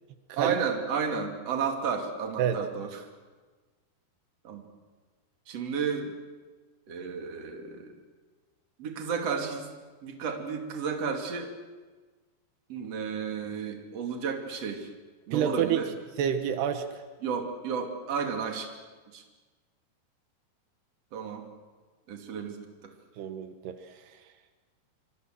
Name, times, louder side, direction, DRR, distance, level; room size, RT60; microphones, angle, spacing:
voice 1, 0.4-3.0 4.4-4.7 5.5-6.1 6.9-7.9 8.8-9.6 10.0-11.5 12.7-14.9 15.3-15.9 17.2-18.7 19.1-19.2 21.1-21.4 22.1-22.9, right 6 dB, 40° right, 3 dB, 3.3 m, -32 dB
voice 2, 15.3-15.8 16.2-17.0 23.2-23.8, right 9 dB, 80° right, 8 dB, 3.3 m, -28 dB
28.0 x 25.0 x 7.7 m, 1.4 s
omnidirectional pair, 4.7 m